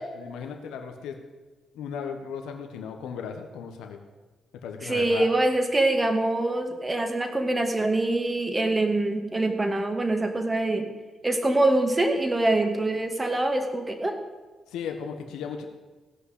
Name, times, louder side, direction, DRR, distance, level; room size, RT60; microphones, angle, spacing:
voice 1, 0.2-1.2 1.7-4.0 4.6-5.3 14.7-15.7, left 6 dB, 90° left, 5 dB, 1.3 m, -36 dB
voice 2, 4.8-10.9 11.2-14.2, right 2 dB, 20° right, 5 dB, 2.1 m, -24 dB
16.0 x 5.7 x 8.3 m, 1.3 s
cardioid pair, 65°, 0 cm